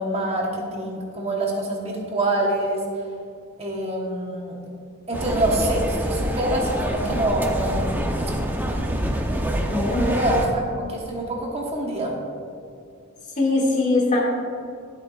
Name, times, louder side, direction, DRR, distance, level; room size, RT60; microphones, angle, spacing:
voice 1, 0.0-2.8 3.6-4.6 5.1-7.9 9.9-10.6 10.9-12.2, right 1 dB, 30° right, -1 dB, 1.2 m, -25 dB
sound 1, 5.1-10.5, equal, 10° right, 0.7 m, -26 dB
voice 2, 9.7-10.1 10.6-10.7 13.4-14.2, left 2 dB, 35° left, -3 dB, 1.9 m, -21 dB
11.5 x 11.0 x 2.5 m, 2.5 s
head